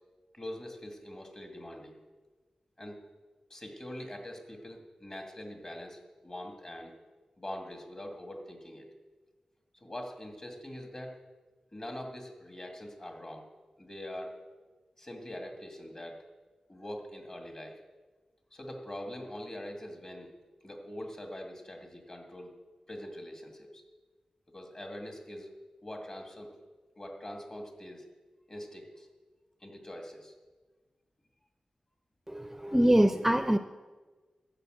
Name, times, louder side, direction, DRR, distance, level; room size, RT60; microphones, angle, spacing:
voice 1, 0.3-2.0 2.8-3.0 3.5-6.9 7.4-8.9 9.8-11.2 11.7-13.5 13.8-14.4 15.0-16.2 16.7-17.8 18.5-20.3 20.6-22.5 22.9-23.8 24.5-25.5 25.8-26.5 27.0-28.0 28.5-29.1 29.6-30.3, left 1 dB, 35° left, 2 dB, 2.4 m, -43 dB
voice 2, 32.3-33.6, right 1 dB, 10° right, 9 dB, 0.5 m, -24 dB
13.5 x 6.7 x 7.8 m, 1.3 s
wide cardioid pair, 65°, 2 cm